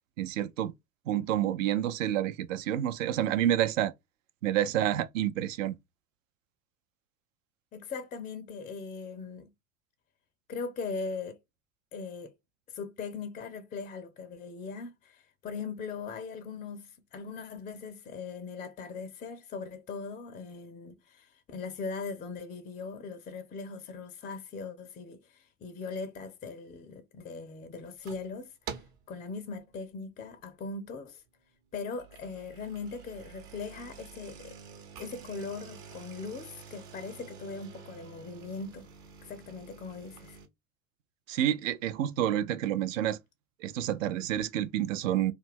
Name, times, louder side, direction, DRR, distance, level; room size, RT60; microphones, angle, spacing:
voice 1, 0.2-0.7 1.1-3.9 4.4-5.8 41.3-43.2 43.6-45.3, right 11 dB, 70° right, 0.5 m, -29 dB
voice 2, 7.7-9.5 10.5-11.4 11.9-12.3 12.7-28.5 29.1-31.2 31.7-34.6 35.0-38.9 39.2-40.4, left 4 dB, 20° left, 0.4 m, -40 dB
sound 1, 27.9-28.3 28.7-29.1 29.6-29.9 30.4-30.5 30.8-30.9 31.8-40.5, right 7 dB, 55° right, 0.9 m, -48 dB
2.4 x 2.1 x 3.4 m
figure-of-eight pair, 70°, 41 cm